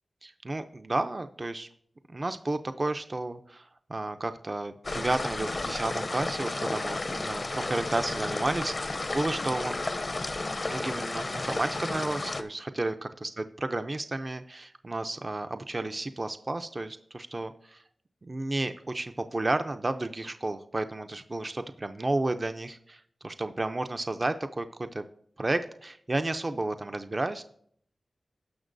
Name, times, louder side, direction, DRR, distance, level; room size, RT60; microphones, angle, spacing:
voice 1, 0.2-1.7 2.1-3.6 3.9-9.8 10.7-17.8 18.2-25.0 25.4-27.4, right 2 dB, 40° right, 8 dB, 0.5 m, -32 dB
sound 1, 4.8-12.4, left 2 dB, 50° left, 0.6 m, -32 dB
17.0 x 6.0 x 2.6 m, 0.65 s
cardioid pair, 50°, 0 cm